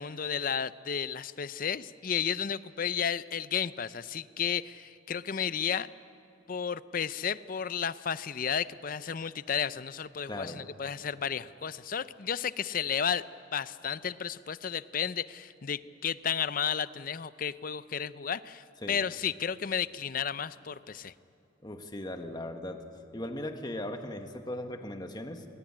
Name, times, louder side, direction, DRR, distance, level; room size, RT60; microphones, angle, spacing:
voice 1, 0.0-5.9 6.5-13.2 13.5-21.1, left 7 dB, 45° left, 15 dB, 0.5 m, -33 dB
voice 2, 10.3-10.7 18.8-19.0 21.6-22.8 23.1-25.4, left 1 dB, 20° left, 6 dB, 1.4 m, -38 dB
21.0 x 20.5 x 9.8 m, 2.6 s
head